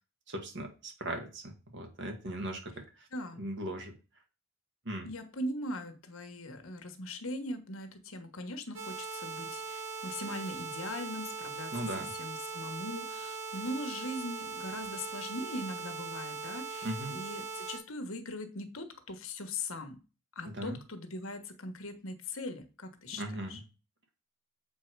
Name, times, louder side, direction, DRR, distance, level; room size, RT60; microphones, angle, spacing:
voice 1, 0.3-2.7 3.4-3.9 4.9-5.1 11.7-12.1 16.8-17.2 20.6-20.8 23.2-23.6, right 1 dB, 55° right, 3 dB, 1.9 m, -38 dB
voice 2, 3.1-3.4 5.0-11.9 12.2-20.0 20.3-23.6, left 1 dB, 70° left, 8 dB, 1.3 m, -40 dB
sound 1, 8.7-17.8, right 4 dB, 80° right, 3.9 m, -40 dB
7.6 x 4.7 x 4.6 m, 0.32 s
head